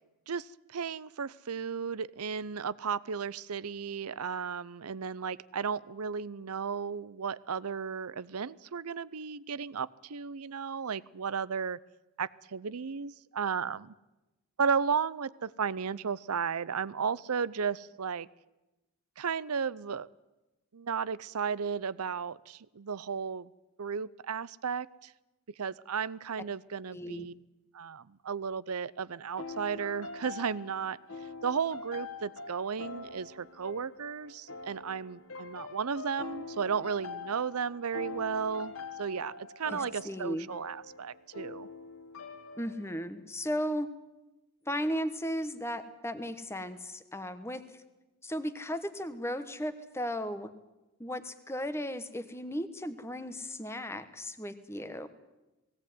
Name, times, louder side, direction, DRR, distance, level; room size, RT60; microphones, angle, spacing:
voice 1, 0.3-11.8 12.2-13.9 14.6-18.3 19.2-20.1 20.7-23.5 23.8-25.1 25.6-27.3 27.7-31.0 31.4-41.7, right 6 dB, 85° right, 20 dB, 0.6 m, -34 dB
voice 2, 26.9-27.3 39.7-40.5 42.6-43.9 44.7-47.6 48.2-50.5 51.0-55.1, equal, 10° left, 11 dB, 1.1 m, -35 dB
sound 1, 29.4-43.1, left 4 dB, 65° left, 1.7 m, -44 dB
19.0 x 17.0 x 9.4 m, 1.0 s
head